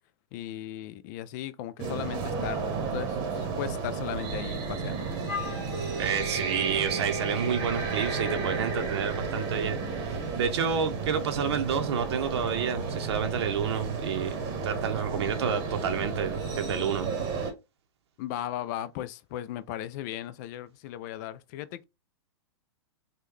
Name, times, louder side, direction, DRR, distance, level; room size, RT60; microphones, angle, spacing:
voice 1, 0.3-5.2 18.2-21.8, left 12 dB, 40° left, 0.4 m, -37 dB
sound 1, 1.8-17.5, right 5 dB, 35° right, 0.9 m, -33 dB
Wind instrument woodwind instrument, 5.3-8.9, equal, ahead, 1.3 m, -37 dB
voice 2, 6.0-17.1, right 7 dB, 70° right, 0.7 m, -30 dB
3.6 x 2.2 x 3.1 m
hypercardioid pair, 135°, 14 cm